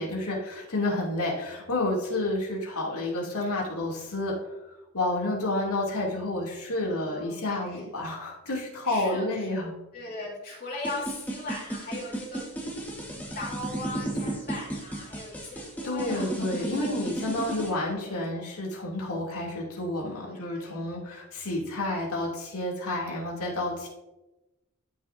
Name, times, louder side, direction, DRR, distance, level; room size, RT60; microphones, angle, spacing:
voice 1, 0.0-4.4 4.9-9.7 15.8-23.9, left 2 dB, 85° left, -3 dB, 2.6 m, -30 dB
voice 2, 6.9-7.8 8.8-9.5 9.9-12.5 13.1-18.4 20.2-20.9, left 2 dB, 45° left, -5 dB, 2.5 m, -40 dB
sound 1, 10.8-17.7, right 1 dB, 10° left, 1.4 m, -34 dB
13.5 x 5.8 x 2.6 m, 0.99 s
head